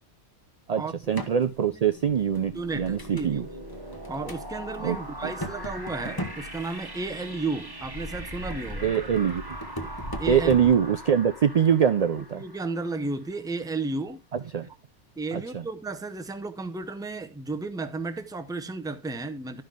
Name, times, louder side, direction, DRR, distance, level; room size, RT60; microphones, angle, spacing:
voice 1, 0.7-3.5 4.8-5.0 8.8-9.6 10.3-12.4 14.5-14.7 15.3-15.6, right 8 dB, 60° right, 0.4 m, -23 dB
sound 1, 1.0-1.4 2.0-3.3 3.7-4.4 4.7-4.8 5.2-7.1 7.7-10.8, equal, 20° left, 1.0 m, -38 dB
sound 2, 1.8-13.3, right 1 dB, 20° right, 1.2 m, -41 dB
voice 2, 2.5-3.4 4.1-8.9 10.2-10.6 12.3-14.2 15.2-19.6, right 3 dB, 5° right, 0.5 m, -33 dB
11.5 x 5.5 x 3.6 m
omnidirectional pair, 1.2 m